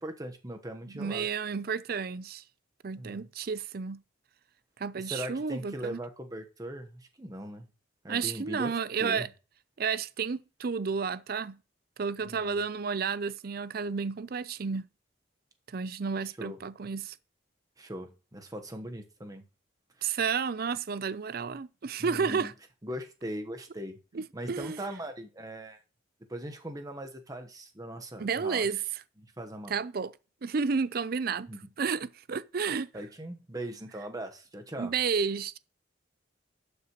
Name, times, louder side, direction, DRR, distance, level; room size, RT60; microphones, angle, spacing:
voice 1, 0.0-1.3 3.0-3.3 5.0-7.7 8.0-8.7 9.0-9.3 12.2-12.6 16.4-16.6 17.8-19.4 20.0-20.2 22.0-22.5 22.8-24.0 24.3-25.8 26.3-28.7 29.2-29.7 31.5-31.7 32.9-34.9, right 1 dB, 20° right, 1.1 m, -40 dB
voice 2, 0.9-2.4 2.8-4.0 4.8-6.0 8.1-9.3 9.8-11.6 12.0-14.9 15.7-17.2 20.0-22.5 24.1-24.8 28.2-28.8 29.7-30.1 30.4-31.5 31.8-32.9 34.8-35.6, right 5 dB, 50° right, 0.5 m, -31 dB
12.0 x 6.7 x 3.0 m
head